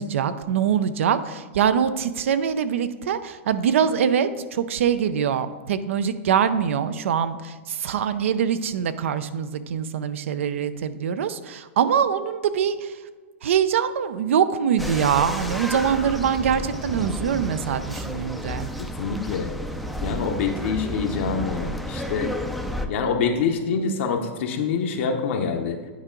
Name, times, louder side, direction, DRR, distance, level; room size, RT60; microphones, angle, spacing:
voice 1, 0.0-13.0 13.4-18.7, right 8 dB, 80° right, 13 dB, 0.5 m, -23 dB
sound 1, 14.8-22.9, equal, ahead, 0.4 m, -31 dB
voice 2, 19.0-19.5 20.0-22.3 22.9-25.8, left 5 dB, 70° left, 3 dB, 0.8 m, -25 dB
9.4 x 4.7 x 3.8 m, 1.5 s
supercardioid pair, 150°, 7 cm